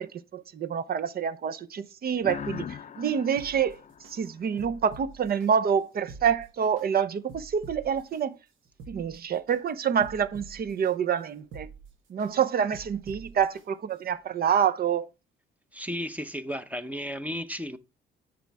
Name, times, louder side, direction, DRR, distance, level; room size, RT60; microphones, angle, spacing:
voice 1, 0.0-2.7 3.0-3.8 4.1-8.3 8.9-11.7 12.1-15.1, right 7 dB, 50° right, 0.7 m, -27 dB
sound 1, 2.2-4.9, left 8 dB, 40° left, 0.5 m, -40 dB
sound 2, 3.4-4.1 4.6-5.5 5.9-6.9 7.3-8.2 8.7-9.6 10.0-10.9 11.4-12.3 12.7-13.6 14.1-14.2, right 4 dB, 85° right, 1.3 m, -47 dB
voice 2, 15.7-17.8, equal, 5° right, 0.8 m, -34 dB
8.8 x 6.2 x 3.5 m
cardioid pair, 90°, 20 cm